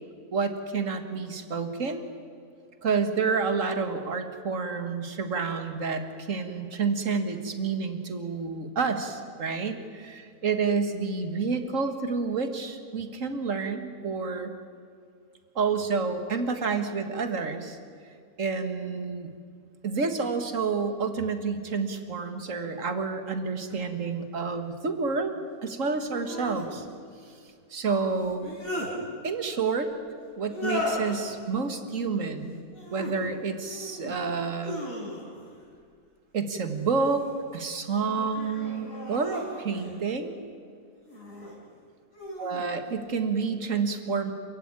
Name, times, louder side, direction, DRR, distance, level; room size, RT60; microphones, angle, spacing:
voice 1, 0.3-2.1 2.8-14.5 15.6-17.8 18.4-19.3 19.8-25.4 25.6-26.9 27.7-28.4 29.2-29.9 30.4-32.6 32.9-34.8 36.3-40.4 42.4-44.3, right 4 dB, 55° right, 8 dB, 2.1 m, -29 dB
sound 1, 23.7-23.8 26.1-26.7 28.2-28.9 30.5-31.2 32.7-33.2 33.7-34.2 34.6-35.5 36.7-37.3 37.9-40.0 41.0-41.5 42.1-42.7, left 1 dB, 60° left, 5.4 m, -36 dB
27.5 x 15.5 x 9.7 m, 2.2 s
omnidirectional pair, 1.6 m